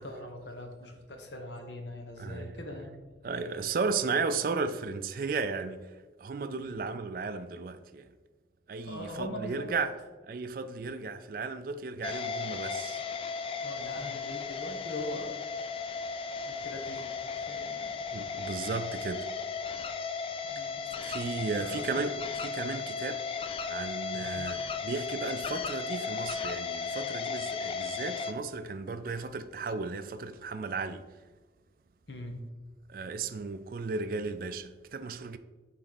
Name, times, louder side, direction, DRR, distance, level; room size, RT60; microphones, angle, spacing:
voice 1, 0.0-2.9 6.6-6.8 8.8-9.7 10.7-11.0 13.6-15.4 16.4-17.9 20.5-20.8 21.6-22.1 24.3-24.5 32.1-32.4, left 1 dB, 80° left, 1.1 m, -42 dB
voice 2, 2.2-2.5 3.2-8.1 8.7-9.9 10.3-13.0 16.3-16.4 18.1-19.3 20.6-20.7 21.0-31.0 32.9-35.4, right 4 dB, 50° right, 0.3 m, -35 dB
sound 1, 12.0-28.3, left 5 dB, 30° left, 0.3 m, -35 dB
7.6 x 4.0 x 4.0 m
head